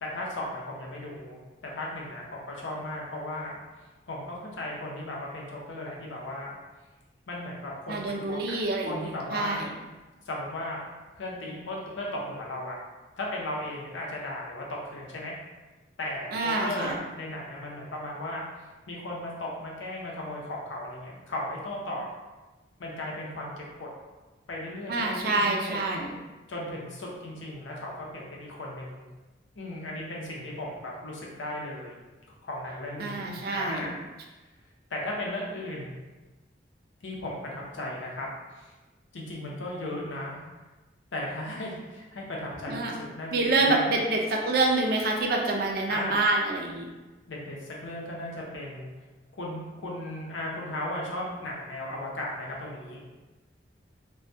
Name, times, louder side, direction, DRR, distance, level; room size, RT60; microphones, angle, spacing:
voice 1, 0.0-3.6 4.1-6.6 7.3-8.0 8.3-8.6 8.9-9.6 10.3-10.8 11.1-12.8 13.2-14.6 14.9-15.3 16.0-18.4 18.9-22.1 22.8-23.9 24.5-25.8 26.5-29.1 29.5-32.0 32.4-34.0 34.9-35.9 37.0-38.3 38.5-38.7 39.1-40.4 41.1-43.9 45.9-46.2 47.3-48.9 49.3-53.0, left 1 dB, 85° left, -3 dB, 0.6 m, -36 dB
voice 2, 7.9-9.7 16.3-17.0 24.9-26.1 33.0-33.9 42.7-42.9 43.3-46.9, right 2 dB, 50° right, 1 dB, 0.3 m, -27 dB
2.2 x 2.2 x 2.6 m, 1.2 s
head